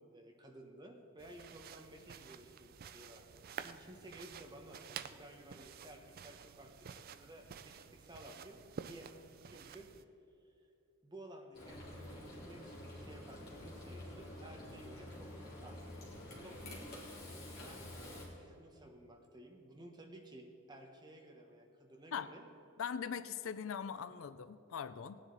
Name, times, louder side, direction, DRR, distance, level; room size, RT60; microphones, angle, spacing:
voice 1, 0.0-9.9 11.0-15.8 16.4-16.9 17.6-17.9 18.3-22.5, right 1 dB, 20° right, 2 dB, 1.0 m, -55 dB
sound 1, 1.2-10.0, right 7 dB, 45° right, 0.3 m, -51 dB
Frying (food), 11.5-18.3, left 1 dB, 45° left, 2.8 m, -49 dB
voice 2, 22.8-25.2, left 7 dB, 65° left, 13 dB, 0.4 m, -41 dB
17.0 x 9.8 x 3.9 m, 2.7 s
head